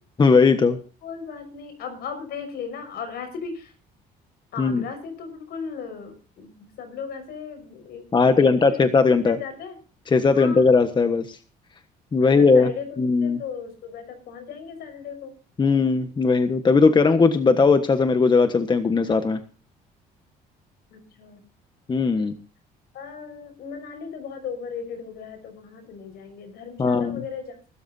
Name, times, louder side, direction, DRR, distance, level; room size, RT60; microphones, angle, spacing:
voice 1, 0.2-0.8 4.6-4.9 8.1-9.4 10.1-11.4 12.1-12.7 13.0-13.4 15.6-19.4 21.9-22.3 26.8-27.2, left 4 dB, 25° left, 8 dB, 1.3 m, -18 dB
voice 2, 1.0-3.7 4.5-8.8 9.2-9.8 10.3-10.6 12.2-15.3 20.9-21.4 22.2-22.3 22.9-27.5, left 6 dB, 70° left, 8 dB, 6.0 m, -37 dB
23.5 x 13.0 x 2.8 m, 0.38 s
cardioid pair, 110°, 17 cm